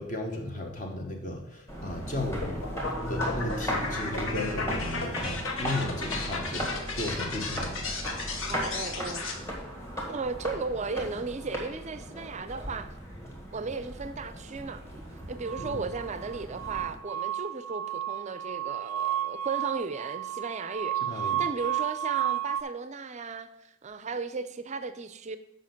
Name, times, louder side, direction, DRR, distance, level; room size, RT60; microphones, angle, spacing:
voice 1, 0.0-2.6 3.1-7.7 15.6-15.8 21.0-21.5, left 1 dB, 35° left, 1.2 m, -35 dB
sound 1, 1.7-17.0, equal, 10° left, 1.6 m, -37 dB
sound 2, 2.4-9.4, left 3 dB, 60° left, 1.1 m, -35 dB
voice 2, 8.5-9.3 10.1-12.9 13.5-14.8 15.3-25.4, right 4 dB, 30° right, 0.5 m, -35 dB
sound 3, 15.5-22.6, right 10 dB, 90° right, 0.4 m, -32 dB
7.4 x 5.2 x 5.9 m
head